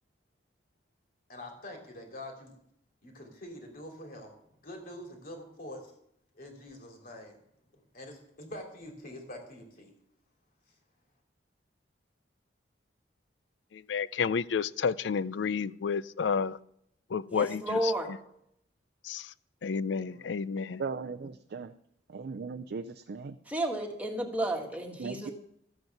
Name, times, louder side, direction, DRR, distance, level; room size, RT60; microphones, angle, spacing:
voice 1, 1.3-2.5 3.0-4.3 4.6-5.9 6.3-7.4 7.9-9.9, left 1 dB, 50° left, 2.8 m, -45 dB
voice 2, 13.9-16.6 17.1-17.8 19.1-19.2 19.6-20.8, left 6 dB, 80° left, 0.4 m, -30 dB
voice 3, 17.3-18.1 23.5-25.3, right 1 dB, 10° right, 1.7 m, -32 dB
voice 4, 20.0-20.3 20.8-21.7 22.1-23.4 25.0-25.3, right 4 dB, 60° right, 0.5 m, -38 dB
13.5 x 8.0 x 5.8 m
head